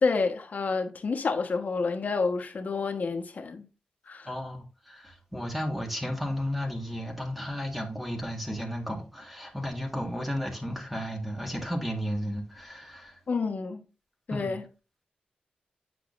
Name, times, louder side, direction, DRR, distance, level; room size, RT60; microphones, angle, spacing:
voice 1, 0.0-3.7 4.1-4.3 13.3-13.8 14.3-14.6, left 4 dB, 60° left, 1.1 m, -29 dB
voice 2, 4.3-13.2 14.3-14.6, equal, 5° right, 1.8 m, -33 dB
7.9 x 6.2 x 2.5 m
cardioid pair, 75°, 3 cm